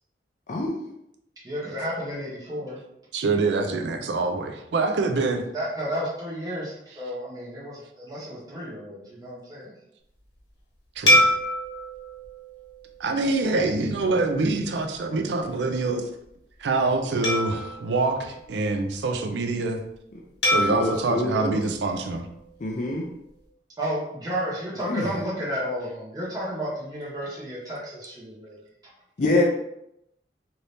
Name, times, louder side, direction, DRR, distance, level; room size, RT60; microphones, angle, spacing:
voice 1, 0.5-0.8 20.8-21.6 22.6-23.1 24.9-25.1 29.2-29.4, left 2 dB, 45° left, -1 dB, 0.4 m, -25 dB
voice 2, 1.4-2.8 5.5-9.7 23.8-28.6, equal, 20° right, -7 dB, 0.9 m, -32 dB
voice 3, 3.1-5.4 11.0-11.2 13.0-16.1 16.6-19.8 20.5-22.3, right 3 dB, 75° right, 5 dB, 0.4 m, -25 dB
sound 1, 11.1-13.7 14.3-14.5 17.2-19.0 20.4-22.7, equal, 85° left, 1.0 m, -26 dB
2.8 x 2.6 x 3.3 m, 0.81 s
head